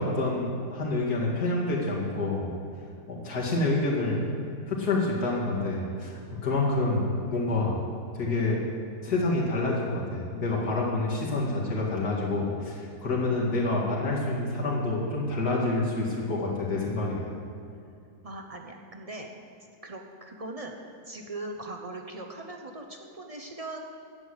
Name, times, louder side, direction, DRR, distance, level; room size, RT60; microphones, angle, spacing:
voice 1, 0.0-2.5 3.1-4.2 4.7-7.8 8.1-8.6 9.0-17.3, left 2 dB, 65° left, -4 dB, 2.9 m, -28 dB
voice 2, 18.2-19.3 19.8-20.7 21.1-23.9, right 2 dB, 30° right, 2 dB, 0.7 m, -40 dB
11.0 x 8.2 x 8.0 m, 2.6 s
omnidirectional pair, 1.8 m